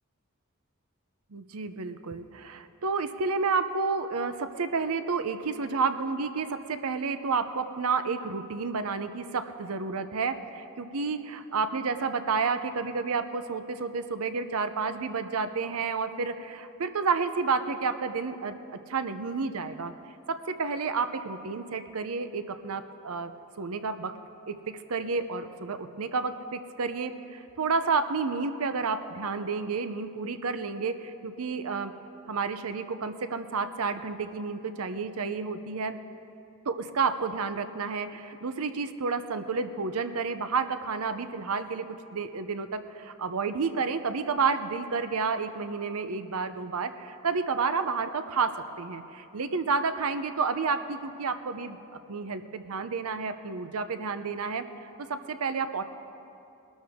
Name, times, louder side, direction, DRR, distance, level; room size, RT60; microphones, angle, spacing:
voice 1, 1.3-18.6 18.9-19.9 20.3-24.1 24.5-31.9 32.3-36.0 36.7-51.8 52.1-54.6 55.1-55.8, right 4 dB, 85° right, 10 dB, 0.7 m, -30 dB
20.0 x 12.5 x 3.6 m, 2.7 s
head